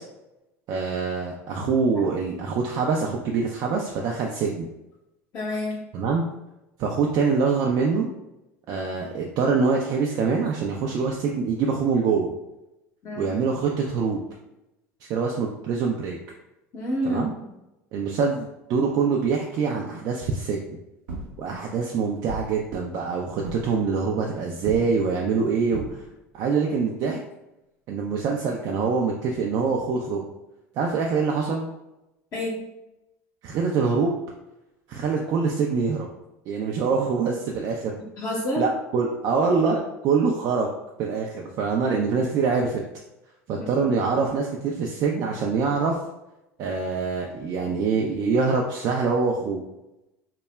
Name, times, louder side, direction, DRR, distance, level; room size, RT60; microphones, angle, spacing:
voice 1, 0.7-4.7 5.9-6.3 6.8-8.1 8.7-12.3 13.1-14.2 15.1-16.2 17.1-17.3 17.9-20.6 21.4-25.8 26.3-27.2 27.9-30.2 30.8-31.7 33.4-34.2 34.9-36.1 36.5-38.0 38.6-40.7 41.0-42.8 43.5-46.0 46.6-49.6, right 5 dB, 55° right, 0 dB, 0.4 m, -24 dB
voice 2, 5.3-5.8 13.0-13.3 16.7-17.3 32.3-32.6 38.2-38.6 43.6-43.7, left 1 dB, 50° left, -4 dB, 0.8 m, -28 dB
sound 1, 21.1-21.8 22.3-23.0 23.4-23.9 24.6-25.2 25.7-26.3 27.5-27.6 29.7-29.8, right 2 dB, 75° right, 0.9 m, -38 dB
2.2 x 2.0 x 3.2 m, 0.92 s
hypercardioid pair, 80°, 8 cm